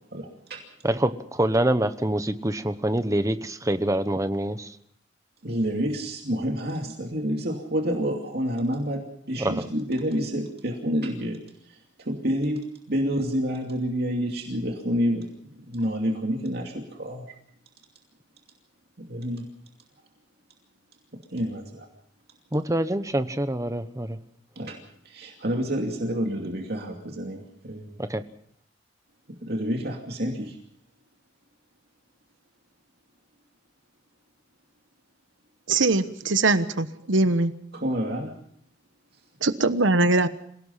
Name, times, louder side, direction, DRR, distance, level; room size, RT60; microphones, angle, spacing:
voice 1, 0.1-0.6 5.4-11.4 11.7-12.6 12.9-15.3 15.6-17.3 19.0-19.5 21.3-21.9 24.6-24.8 25.0-27.9 29.4-30.6 37.7-38.3, equal, 55° right, 1 dB, 2.6 m, -28 dB
voice 2, 0.8-4.8 9.4-9.7 22.5-24.2 28.0-28.2, right 1 dB, 15° right, 11 dB, 1.0 m, -25 dB
voice 3, 35.7-37.5 39.4-40.3, right 3 dB, 80° right, 11 dB, 1.2 m, -21 dB
27.0 x 17.5 x 5.7 m, 0.65 s
head